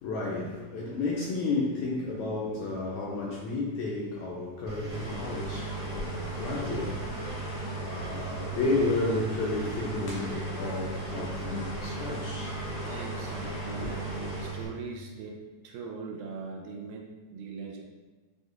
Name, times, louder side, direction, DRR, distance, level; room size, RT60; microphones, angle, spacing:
voice 1, 0.0-6.9 7.2-7.5 7.8-12.6 13.8-13.9, left 3 dB, 80° left, 1.7 m, -32 dB
Engine, 4.7-14.7, right 4 dB, 65° right, 1.5 m, -38 dB
sound 1, 4.9-14.5, left 2 dB, 55° left, 1.0 m, -39 dB
voice 2, 12.8-15.4 15.6-17.8, right 5 dB, 80° right, 2.0 m, -40 dB
6.3 x 2.4 x 2.4 m
omnidirectional pair, 3.7 m